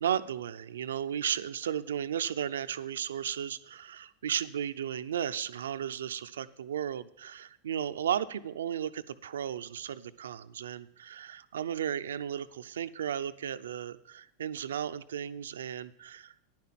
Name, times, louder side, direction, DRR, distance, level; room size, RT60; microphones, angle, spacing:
voice 1, 0.0-16.4, right 9 dB, 90° right, 12 dB, 0.5 m, -34 dB
10.0 x 5.9 x 7.4 m, 0.80 s
hypercardioid pair, 110°, 0 cm